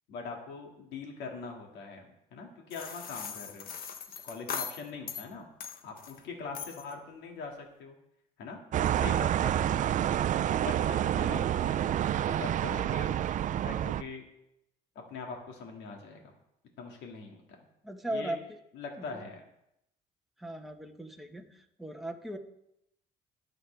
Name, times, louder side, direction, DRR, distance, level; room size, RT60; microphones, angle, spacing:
voice 1, 0.1-3.7 4.1-5.5 5.8-8.0 8.4-8.6 9.0-10.2 10.6-13.1 13.6-14.2 15.1-16.3 16.8-17.4 18.1-18.3 18.7-19.4, left 4 dB, 85° left, 1 dB, 2.2 m, -42 dB
sound 1, 2.7-5.3 5.6-6.2 6.5-6.9, left 7 dB, 60° left, 1.1 m, -40 dB
sound 2, 8.7-14.0, right 11 dB, 50° right, 0.5 m, -28 dB
voice 2, 17.8-18.4 19.1-19.2 20.4-21.5 21.8-22.4, right 1 dB, ahead, 3 dB, 1.3 m, -37 dB
22.5 x 7.8 x 3.4 m, 0.80 s
cardioid pair, 110°, 17 cm